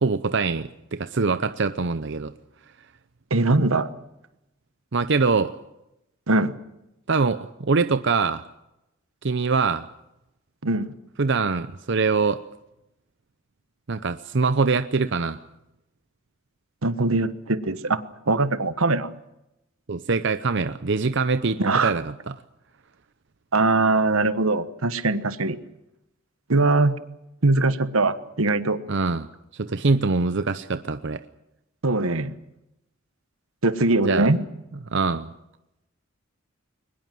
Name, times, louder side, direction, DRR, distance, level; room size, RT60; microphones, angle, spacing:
voice 1, 0.0-2.3 4.9-5.5 7.1-8.4 9.2-9.9 11.2-12.4 13.9-15.4 19.9-22.4 28.9-29.3 29.5-31.2 34.1-34.3 34.9-35.3, right 4 dB, 60° right, 11 dB, 0.7 m, -23 dB
voice 2, 3.3-3.9 6.3-6.6 10.6-10.9 16.8-19.1 21.6-21.9 23.5-25.6 26.5-26.9 27.4-28.8 31.8-32.3 33.6-34.4, right 2 dB, 85° right, 13 dB, 1.3 m, -21 dB
22.5 x 20.5 x 7.7 m, 0.88 s
head